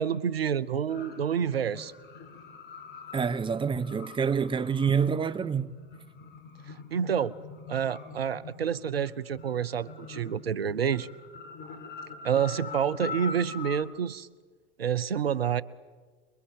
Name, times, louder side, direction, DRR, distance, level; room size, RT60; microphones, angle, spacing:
voice 1, 0.0-1.9 6.9-7.3 7.7-11.1 12.2-14.3 14.8-15.6, right 8 dB, 90° right, 0.8 m, -28 dB
sound 1, 0.9-13.8, left 5 dB, 35° left, 5.1 m, -44 dB
voice 2, 3.1-5.7, right 6 dB, 15° right, 1.0 m, -27 dB
28.5 x 22.0 x 9.0 m
hypercardioid pair, 90°, 29 cm